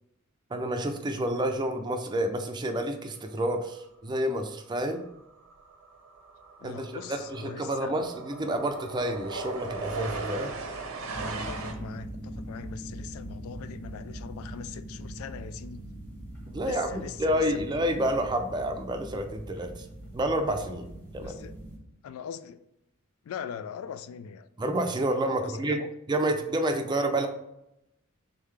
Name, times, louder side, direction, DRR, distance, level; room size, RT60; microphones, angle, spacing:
voice 1, 0.5-5.0 6.6-10.5 16.5-19.9 20.1-20.9 21.1-21.4 24.6-25.8 26.1-27.3, right 1 dB, 20° right, 6 dB, 0.4 m, -29 dB
sound 1, 4.9-5.1 5.4-11.7, right 3 dB, 90° right, 0.7 m, -38 dB
voice 2, 6.6-7.9 11.2-15.8 16.6-17.9 21.2-21.6 22.0-22.6 23.2-24.5 25.2-25.9, left 7 dB, 80° left, 16 dB, 0.3 m, -41 dB
sound 2, 11.1-21.8, right 1 dB, 10° left, 1.1 m, -41 dB
3.7 x 3.6 x 3.2 m, 0.84 s
head